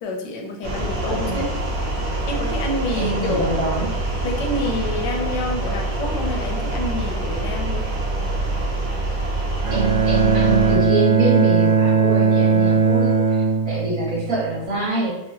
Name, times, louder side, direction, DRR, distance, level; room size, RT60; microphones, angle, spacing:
voice 1, 0.0-1.5 2.3-3.5 4.2-7.9, left 2 dB, 80° left, 2 dB, 1.3 m, -28 dB
sound 1, 0.6-10.8, right 2 dB, 85° right, 1.8 m, -25 dB
voice 2, 1.1-1.4 2.9-3.9 9.7-15.1, right 2 dB, 50° right, -7 dB, 2.0 m, -25 dB
Bowed string instrument, 9.6-14.7, right 5 dB, 70° right, 1.3 m, -18 dB
5.5 x 2.2 x 2.9 m, 0.91 s
omnidirectional pair, 1.9 m